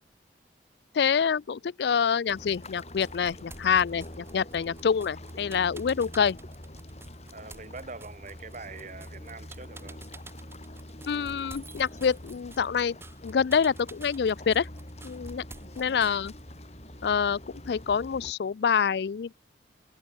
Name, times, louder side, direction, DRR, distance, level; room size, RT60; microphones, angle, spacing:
voice 1, 0.9-6.4 11.1-13.0 13.2-14.7 15.0-15.4 15.8-16.3 17.0-17.4 17.6-19.3, left 6 dB, 65° left, 0.4 m, -26 dB
sound 1, 2.3-18.3, left 1 dB, 35° left, 6.2 m, -45 dB
sound 2, 2.3-16.5, right 2 dB, 15° right, 4.0 m, -50 dB
voice 2, 7.3-10.0, right 3 dB, 40° right, 1.4 m, -43 dB
head